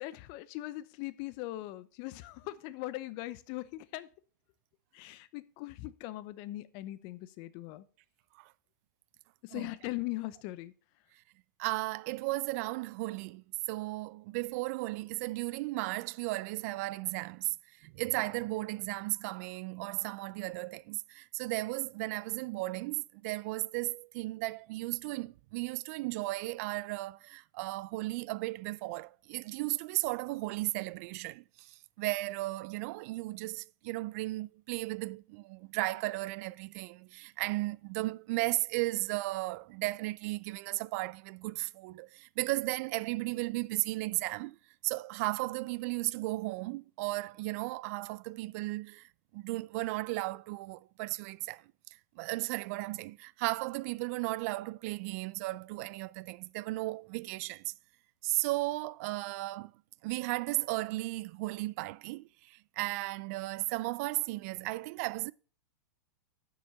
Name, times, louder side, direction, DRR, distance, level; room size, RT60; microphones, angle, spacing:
voice 1, 0.0-4.1 4.9-7.8 9.5-10.7, left 18 dB, 45° left, 0.7 m, -40 dB
voice 2, 11.6-17.6 17.8-44.6 44.8-51.6 52.2-57.7 58.2-59.7 60.0-65.3, right 21 dB, 50° right, 0.4 m, -35 dB
7.3 x 6.1 x 6.4 m
hypercardioid pair, 130°, 11 cm